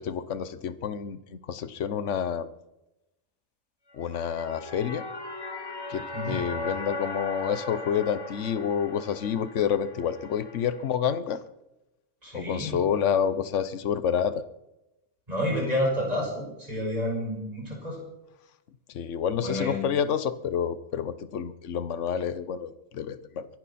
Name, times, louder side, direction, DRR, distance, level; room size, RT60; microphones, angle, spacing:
voice 1, 0.0-2.5 3.9-5.0 5.9-11.4 12.3-14.4 18.9-23.5, left 8 dB, 70° left, 14 dB, 1.2 m, -28 dB
sound 1, 3.9-10.9, left 2 dB, 20° left, 1.5 m, -38 dB
voice 2, 12.2-12.8 15.3-18.0 19.4-19.8, left 1 dB, 30° right, -1 dB, 6.0 m, -29 dB
23.5 x 11.0 x 4.3 m, 0.90 s
omnidirectional pair, 1.3 m